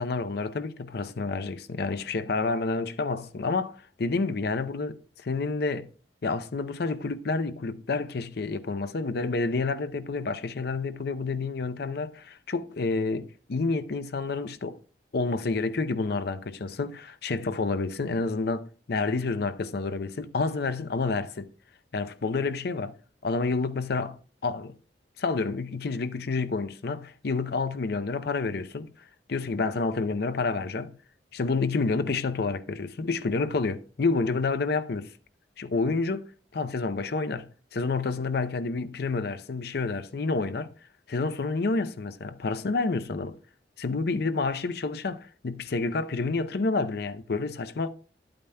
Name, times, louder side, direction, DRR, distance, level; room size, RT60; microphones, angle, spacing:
voice 1, 0.0-5.9 6.2-14.8 15.1-21.5 21.9-23.0 23.2-24.8 25.2-28.9 29.3-31.0 31.3-35.1 35.6-40.7 41.1-43.4 43.8-47.9, left 3 dB, 65° left, 0.6 m, -29 dB
11.0 x 8.7 x 2.2 m
head